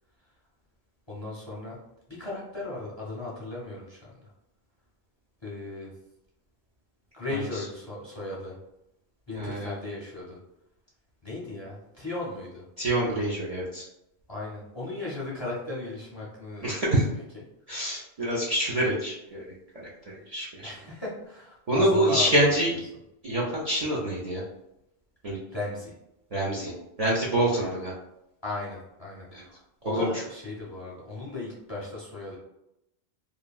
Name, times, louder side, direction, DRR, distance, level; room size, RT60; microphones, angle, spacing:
voice 1, 1.1-1.8 2.1-4.3 5.4-5.9 7.1-8.6 9.3-10.4 11.2-12.6 14.3-16.9 20.6-22.5 25.5-25.9 27.6-27.7 28.4-32.4, left 2 dB, 30° left, -5 dB, 0.6 m, -36 dB
voice 2, 9.3-9.7 12.8-13.9 16.6-17.0 17.7-19.4 20.1-20.7 21.7-22.7 23.2-24.4 25.2-25.4 26.3-26.7 27.0-27.9 29.3-29.4 29.8-30.1, right 1 dB, 50° right, -6 dB, 0.5 m, -26 dB
3.1 x 2.3 x 2.3 m, 0.87 s
omnidirectional pair, 1.1 m